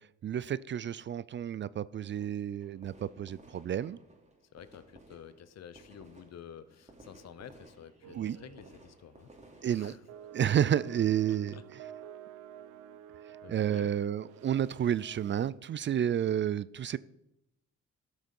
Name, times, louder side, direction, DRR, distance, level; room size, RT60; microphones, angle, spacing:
voice 1, 0.2-4.0 8.1-8.4 9.6-10.0 10.3-11.6 13.5-17.0, right 10 dB, 40° right, 0.4 m, -30 dB
sound 1, 2.0-11.8, right 2 dB, 20° right, 2.8 m, -58 dB
voice 2, 4.5-9.3 9.7-10.0 11.2-11.6 13.4-13.9, left 8 dB, 60° left, 0.9 m, -50 dB
sound 2, 8.0-8.8 9.1-9.3 10.1-15.5, right 9 dB, 85° right, 0.9 m, -50 dB
13.0 x 6.4 x 5.4 m
cardioid pair, 90°, 30 cm